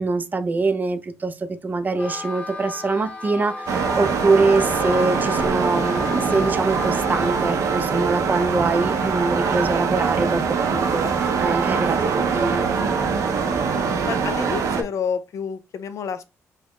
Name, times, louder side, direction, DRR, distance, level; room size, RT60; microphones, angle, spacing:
voice 1, 0.0-12.6, right 3 dB, 30° right, 0.4 m, -24 dB
Wind instrument woodwind instrument, 1.9-7.5, left 2 dB, 20° left, 1.0 m, -33 dB
sound 1, 3.7-14.8, right 5 dB, 80° right, 0.6 m, -23 dB
voice 2, 14.0-16.3, left 7 dB, 65° left, 0.4 m, -29 dB
3.9 x 2.1 x 3.0 m
cardioid pair, 105°, 6 cm